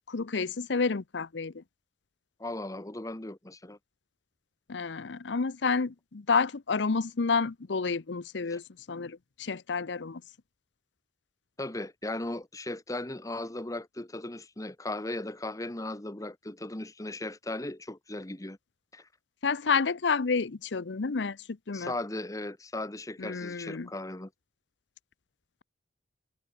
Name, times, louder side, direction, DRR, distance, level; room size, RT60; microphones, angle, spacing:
voice 1, 0.1-1.6 4.7-8.6 8.9-10.2 19.4-21.4 21.7-21.9 23.2-23.9, left 4 dB, 75° left, 0.7 m, -29 dB
voice 2, 2.4-3.8 8.5-8.6 11.6-18.6 18.9-19.1 21.7-24.3, left 2 dB, 20° left, 1.2 m, -37 dB
head